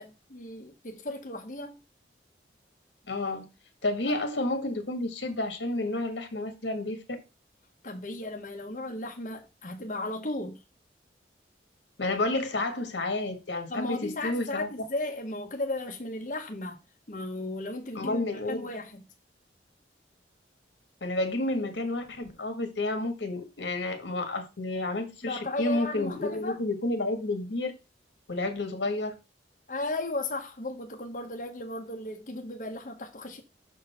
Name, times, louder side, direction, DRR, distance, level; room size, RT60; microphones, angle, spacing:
voice 1, 0.0-1.8 7.8-10.6 13.7-16.8 17.1-18.2 18.5-19.0 25.2-26.6 29.7-33.4, left 2 dB, 45° left, 1.0 m, -35 dB
voice 2, 3.1-3.5 3.8-7.2 12.0-14.7 17.9-18.7 21.0-27.7 28.3-29.1, left 2 dB, 90° left, 1.7 m, -30 dB
6.5 x 4.1 x 5.6 m
head